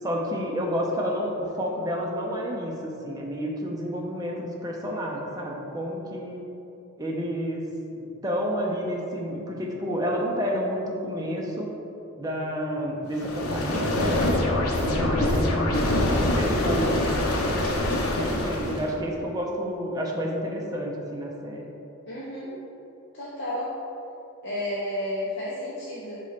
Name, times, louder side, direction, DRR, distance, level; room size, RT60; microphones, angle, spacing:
voice 1, 0.0-6.4 7.0-7.7 8.0-11.7 12.2-14.4 14.8-15.8 16.2-21.7, equal, 15° right, -2 dB, 0.7 m, -30 dB
sound 1, 13.1-18.9, left 1 dB, 85° left, 0.8 m, -24 dB
voice 2, 22.1-22.5 23.1-23.7 24.4-26.2, left 1 dB, 55° left, -8 dB, 0.9 m, -31 dB
5.4 x 4.1 x 5.0 m, 2.9 s
head